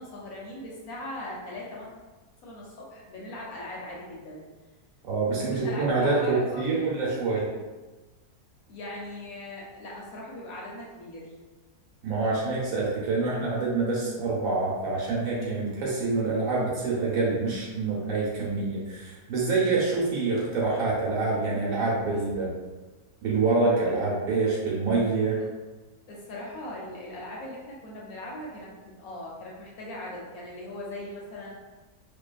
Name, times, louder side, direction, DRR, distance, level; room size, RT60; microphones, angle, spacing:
voice 1, 0.0-1.9 2.4-4.4 5.3-6.9 8.7-11.3 26.1-31.5, left 1 dB, 70° left, -3 dB, 1.0 m, -39 dB
voice 2, 5.0-7.5 12.0-22.5 23.2-25.4, right 3 dB, 65° right, -5 dB, 1.0 m, -26 dB
2.6 x 2.3 x 2.3 m, 1.2 s
omnidirectional pair, 1.7 m